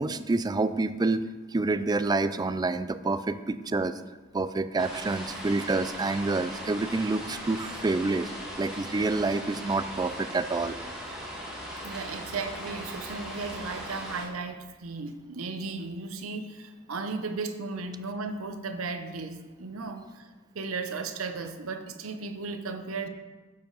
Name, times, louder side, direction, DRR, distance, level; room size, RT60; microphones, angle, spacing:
voice 1, 0.0-3.9 4.3-8.3 8.6-10.8, right 3 dB, 20° right, 13 dB, 0.3 m, -28 dB
sound 1, 4.8-14.3, equal, 5° right, 1.9 m, -39 dB
voice 2, 11.8-20.3 20.5-23.1, right 4 dB, 80° right, 7 dB, 0.8 m, -35 dB
10.0 x 6.9 x 4.0 m, 1.3 s
head